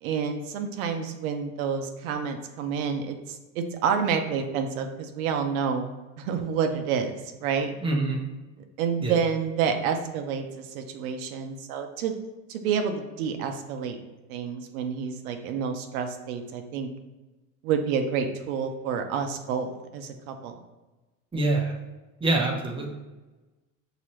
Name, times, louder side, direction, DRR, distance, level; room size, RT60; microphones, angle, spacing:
voice 1, 0.0-5.9 6.2-7.7 8.8-12.1 12.5-14.0 14.3-16.9 17.6-20.5, right 6 dB, 80° right, 6 dB, 0.8 m, -29 dB
voice 2, 7.8-8.2 9.0-9.2 21.3-21.8 22.2-22.9, right 2 dB, 10° right, 0 dB, 0.9 m, -25 dB
5.6 x 2.9 x 3.1 m, 1.1 s
supercardioid pair, 110°, 42 cm